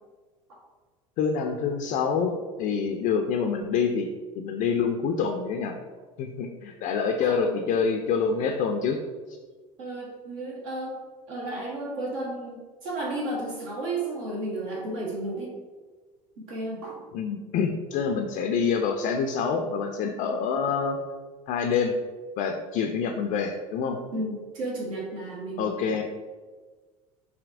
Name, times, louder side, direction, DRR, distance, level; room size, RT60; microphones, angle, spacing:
voice 1, 1.2-4.1 4.3-5.8 6.2-9.0 17.1-21.0 21.5-22.0 22.4-24.0 25.6-26.0, left 6 dB, 50° left, 3 dB, 0.4 m, -26 dB
voice 2, 7.2-7.7 9.8-11.0 11.3-15.5 16.4-17.0 24.1-25.8, right 2 dB, 70° right, -3 dB, 1.3 m, -33 dB
4.9 x 2.7 x 2.5 m, 1.4 s
hypercardioid pair, 75°, 18 cm